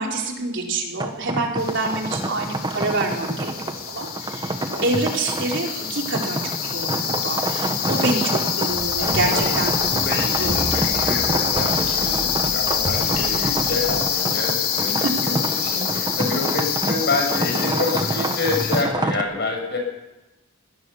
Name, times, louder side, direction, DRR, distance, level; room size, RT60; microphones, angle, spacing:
voice 1, 0.0-9.8 10.3-10.8 15.0-15.1, right 2 dB, 55° right, 1 dB, 4.1 m, -27 dB
sound 1, 1.0-19.2, right 2 dB, 20° right, 1.3 m, -28 dB
sound 2, 1.6-18.8, left 9 dB, 85° left, 3.3 m, -26 dB
Splash splatter, 8.7-14.0, left 1 dB, 65° left, 6.7 m, -34 dB
voice 2, 9.0-9.5 9.9-19.8, left 3 dB, 50° left, 2 dB, 6.8 m, -28 dB
21.5 x 17.5 x 7.2 m, 1.0 s
head